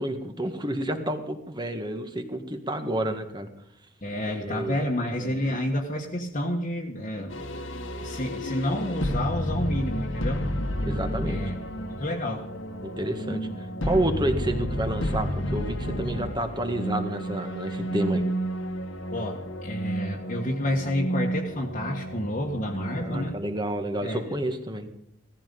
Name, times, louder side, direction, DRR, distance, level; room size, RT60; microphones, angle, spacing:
voice 1, 0.0-3.5 4.4-4.8 5.2-5.6 10.8-11.4 12.8-18.2 22.8-24.9, right 1 dB, 20° right, 6 dB, 1.8 m, -30 dB
voice 2, 4.0-7.4 8.0-10.5 11.2-12.5 19.1-23.3 24.0-24.2, left 1 dB, 40° left, -3 dB, 1.6 m, -29 dB
sound 1, 7.3-23.3, equal, 80° left, 1.9 m, -31 dB
17.5 x 14.5 x 5.5 m, 0.76 s
head